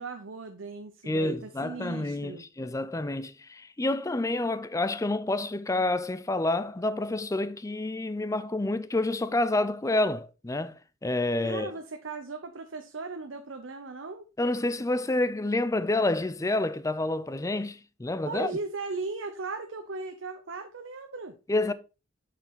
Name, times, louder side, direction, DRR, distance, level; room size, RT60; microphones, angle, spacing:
voice 1, 0.0-2.4 11.4-14.3 18.2-21.4, right 3 dB, 65° right, 0.8 m, -37 dB
voice 2, 1.1-11.7 14.4-18.5 21.5-21.7, left 2 dB, 15° left, 0.5 m, -28 dB
7.4 x 5.8 x 4.0 m
head